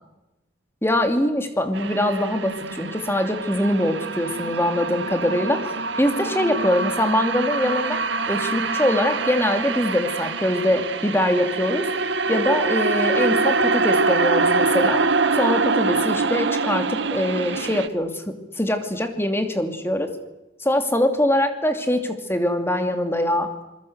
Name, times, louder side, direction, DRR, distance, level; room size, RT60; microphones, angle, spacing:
voice 1, 0.8-8.0 8.3-11.9 12.3-15.0 15.3-20.1 20.6-23.5, left 1 dB, 15° left, 6 dB, 2.7 m, -23 dB
sound 1, 1.7-17.9, right 3 dB, 75° right, 1.3 m, -24 dB
27.0 x 21.5 x 8.1 m, 0.99 s
head